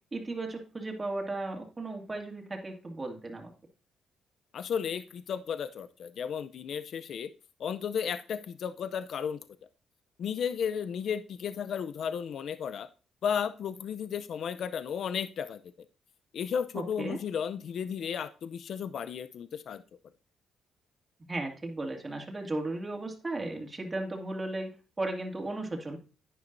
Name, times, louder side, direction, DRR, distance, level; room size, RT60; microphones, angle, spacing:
voice 1, 0.1-3.5 16.7-17.2 21.3-26.0, right 2 dB, 25° right, 2 dB, 2.3 m, -35 dB
voice 2, 4.5-7.3 7.6-9.4 10.2-12.9 13.2-15.6 16.3-19.8, left 7 dB, 65° left, 13 dB, 0.5 m, -34 dB
10.5 x 9.9 x 2.6 m, 0.34 s
cardioid pair, 90°, 0 cm